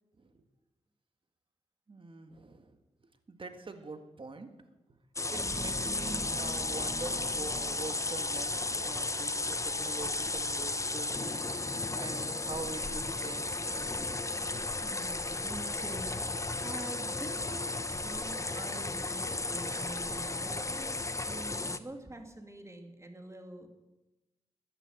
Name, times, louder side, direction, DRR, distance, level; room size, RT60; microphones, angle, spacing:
voice 1, 1.9-2.8 3.3-4.5 5.3-11.4 11.9-14.2 21.3-21.4, right 3 dB, 45° right, 8 dB, 1.7 m, -44 dB
sound 1, 5.2-21.8, left 2 dB, 25° left, 0.9 m, -34 dB
sound 2, 5.3-9.8 10.3-10.4, right 1 dB, 5° right, 1.0 m, -45 dB
sound 3, 6.2-21.0, left 4 dB, 40° left, 1.8 m, -53 dB
voice 2, 14.8-23.7, right 1 dB, 25° right, 5 dB, 2.4 m, -46 dB
13.5 x 9.8 x 7.8 m, 1.1 s
cardioid pair, 60°, 13 cm